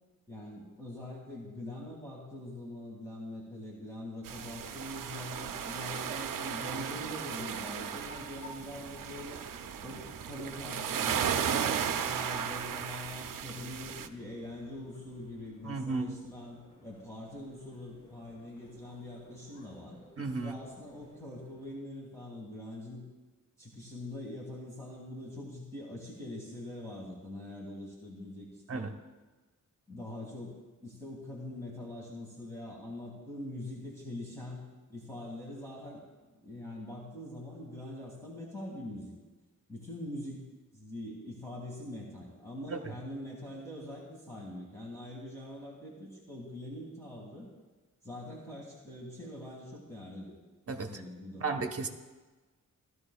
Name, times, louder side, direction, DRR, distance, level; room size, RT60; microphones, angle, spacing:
voice 1, 0.3-9.4 9.8-20.0 20.4-23.0 23.6-28.9 29.9-34.6 34.9-36.0 36.4-39.1 39.7-40.5 40.7-47.5 48.0-50.4 50.9-51.4, left 1 dB, 10° left, -4 dB, 2.1 m, -43 dB
sound 1, 4.2-14.1, right 8 dB, 80° right, 0.6 m, -35 dB
sound 2, 7.9-21.7, left 1 dB, 60° left, 3.9 m, -57 dB
voice 2, 15.6-16.2 20.2-20.6 28.7-28.9 42.7-42.8 50.7-51.0 51.4-51.9, right 3 dB, 45° right, 4 dB, 1.1 m, -34 dB
16.0 x 13.0 x 2.3 m, 1.2 s
wide cardioid pair, 120°, 33 cm